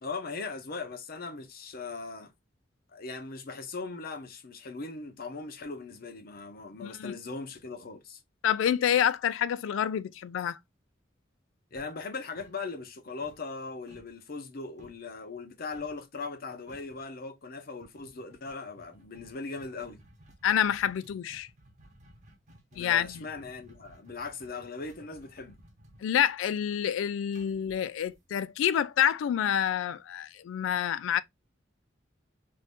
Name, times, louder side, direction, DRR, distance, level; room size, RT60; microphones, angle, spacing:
voice 1, 0.0-2.3 2.9-8.2 11.7-20.0 22.7-25.6, left 4 dB, 50° left, 0.6 m, -39 dB
voice 2, 6.8-7.1 8.4-10.6 20.4-21.5 22.8-23.3 26.0-31.2, left 9 dB, 80° left, 0.3 m, -28 dB
sound 1, 11.8-12.9 13.2-15.1 15.7-16.0 16.3-16.4 16.7-17.0 17.8-28.6, equal, 40° right, 0.9 m, -57 dB
2.6 x 2.5 x 3.4 m
head